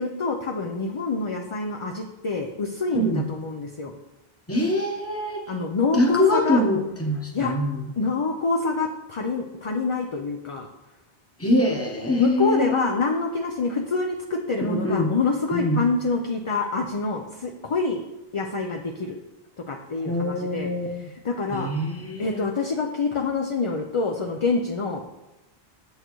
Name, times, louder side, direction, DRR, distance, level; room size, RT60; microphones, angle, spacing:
voice 1, 0.0-3.9 5.5-6.6 7.3-7.5 8.0-10.7 12.2-18.0 18.3-19.2 19.7-20.7 21.2-21.7 22.2-25.1, left 4 dB, 40° left, 2 dB, 0.5 m, -26 dB
voice 2, 4.5-5.5 5.9-7.8 11.4-12.9 14.6-15.1 15.5-15.8 20.0-20.9 21.5-22.4, left 1 dB, 15° left, 1 dB, 1.0 m, -24 dB
8.5 x 8.0 x 3.1 m, 1.0 s
omnidirectional pair, 1.0 m